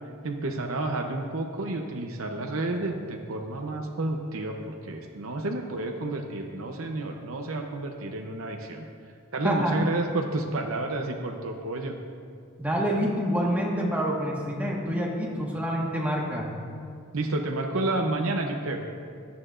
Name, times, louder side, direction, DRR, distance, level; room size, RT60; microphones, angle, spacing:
voice 1, 0.2-8.9 9.3-12.0 17.1-18.8, right 2 dB, 70° right, 3 dB, 0.8 m, -30 dB
voice 2, 12.6-16.5, equal, 5° right, -3 dB, 1.5 m, -27 dB
16.5 x 11.0 x 2.5 m, 2.3 s
head